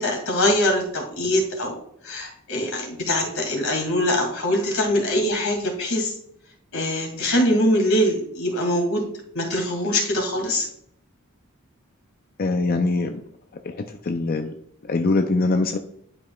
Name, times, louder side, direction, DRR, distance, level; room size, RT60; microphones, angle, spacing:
voice 1, 0.0-1.7 2.0-6.1 6.7-9.0 9.3-10.7, left 1 dB, 80° left, 2 dB, 2.4 m, -23 dB
voice 2, 12.4-13.2 13.6-14.5 14.9-15.8, left 3 dB, 40° left, 6 dB, 0.4 m, -23 dB
11.5 x 5.1 x 2.3 m, 0.70 s
head